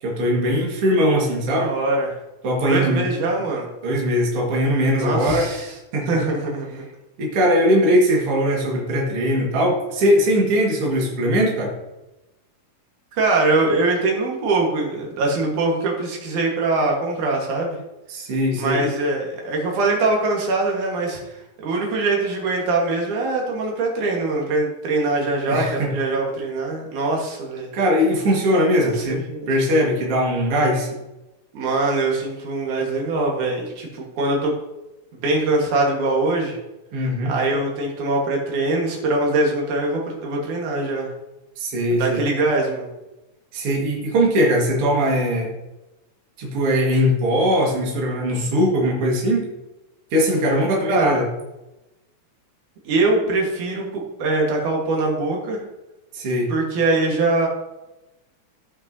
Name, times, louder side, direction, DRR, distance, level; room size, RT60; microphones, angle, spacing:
voice 1, 0.0-1.7 2.4-3.1 3.8-6.2 7.2-11.7 18.1-18.9 25.5-25.9 27.7-30.9 36.9-37.3 41.6-42.3 43.5-45.5 46.4-49.5 50.1-51.3 56.1-56.5, equal, 50° right, -2 dB, 2.5 m, -20 dB
voice 2, 1.5-2.1 2.7-3.7 5.0-5.7 6.1-6.8 10.9-11.0 13.2-17.8 18.5-21.2 21.6-27.7 28.8-29.5 31.5-34.5 35.2-36.6 37.3-41.1 42.0-42.9 50.8-51.2 52.9-55.6 56.5-57.5, right 2 dB, 85° right, -1 dB, 3.0 m, -22 dB
15.5 x 5.8 x 2.7 m, 1.0 s
omnidirectional pair, 3.4 m